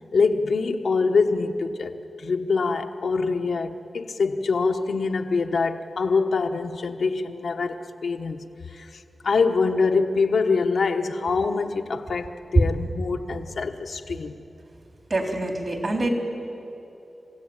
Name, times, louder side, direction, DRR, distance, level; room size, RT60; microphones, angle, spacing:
voice 1, 0.1-8.4 8.7-14.4, left 4 dB, 80° left, 1.2 m, -24 dB
voice 2, 15.1-16.1, right 2 dB, 50° right, 3.8 m, -26 dB
28.5 x 16.0 x 8.9 m
cardioid pair, 55°, 0 cm